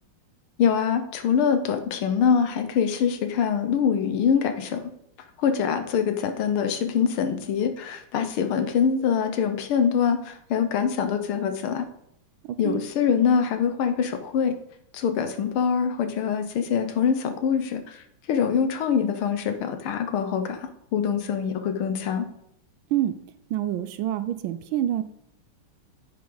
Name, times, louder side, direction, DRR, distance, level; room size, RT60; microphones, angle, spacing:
voice 1, 0.6-4.8 5.4-11.9 12.6-14.6 14.9-22.3, left 7 dB, 75° left, 7 dB, 1.8 m, -24 dB
voice 2, 12.4-12.8 22.9-23.1 23.5-25.0, right 12 dB, 75° right, 12 dB, 1.3 m, -27 dB
9.4 x 7.8 x 3.9 m, 0.76 s
omnidirectional pair, 2.4 m